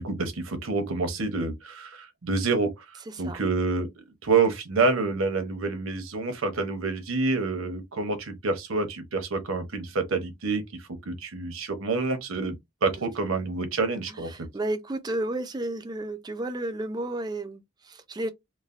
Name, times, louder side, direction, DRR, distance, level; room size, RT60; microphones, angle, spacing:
voice 1, 0.0-2.8 3.2-3.9 4.2-14.3, right 3 dB, 80° right, 0.8 m, -27 dB
voice 2, 3.1-3.4 12.9-13.0 14.1-18.3, right 1 dB, 20° right, 0.4 m, -32 dB
3.2 x 2.1 x 2.4 m
head